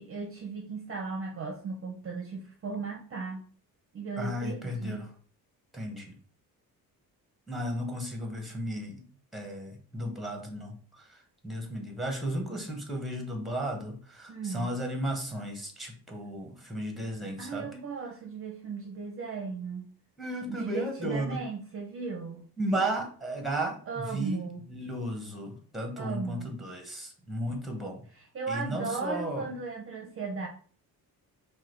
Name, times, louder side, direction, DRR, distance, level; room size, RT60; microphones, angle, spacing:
voice 1, 0.0-3.4 3.9-5.1 14.3-14.7 17.4-19.9 20.5-22.4 23.9-24.6 26.0-26.5 28.1-30.5, right 4 dB, 35° right, 2 dB, 0.6 m, -36 dB
voice 2, 4.2-5.1 5.7-6.1 7.5-9.0 9.3-17.7 20.2-21.4 22.6-28.0 28.5-29.5, right 1 dB, ahead, 2 dB, 1.0 m, -34 dB
4.7 x 2.3 x 4.5 m, 0.43 s
cardioid pair, 155°, 37 cm